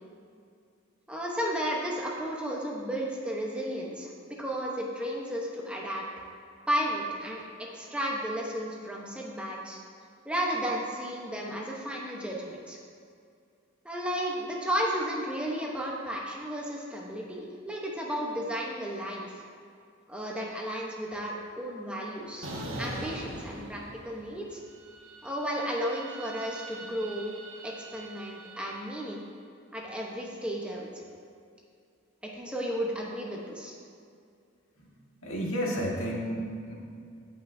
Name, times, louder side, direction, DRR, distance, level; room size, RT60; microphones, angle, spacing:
voice 1, 1.1-6.1 6.7-9.8 10.2-12.8 13.8-19.4 20.1-22.5 22.8-24.6 25.2-27.3 27.6-29.3 29.7-31.0 32.3-33.7, equal, 5° right, -3 dB, 0.9 m, -33 dB
sound 1, 22.4-24.4 24.7-29.0, right 1 dB, 80° right, 1.3 m, -42 dB
voice 2, 35.2-36.7, equal, 85° left, -3 dB, 1.7 m, -31 dB
15.5 x 5.6 x 2.7 m, 2.3 s
head